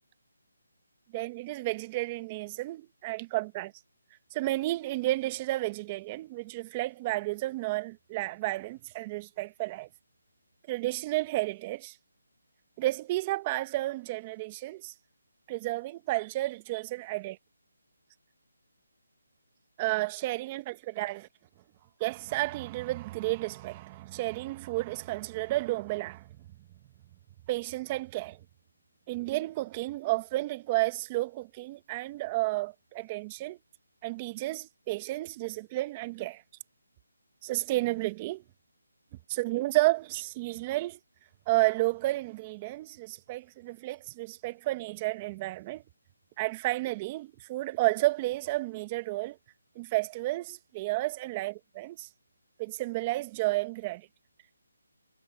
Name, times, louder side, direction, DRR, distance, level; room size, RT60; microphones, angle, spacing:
voice 1, 1.1-3.7 4.3-9.9 10.7-11.9 12.8-14.9 15.5-17.4 19.8-21.3 22.0-26.3 27.5-28.4 29.1-33.6 34.0-36.4 37.4-38.4 39.3-41.0 41.5-45.8 46.4-49.4 49.7-52.1 52.6-54.1, right 19 dB, 20° right, 1.2 m, -31 dB
hypercardioid pair, 165°, 0 cm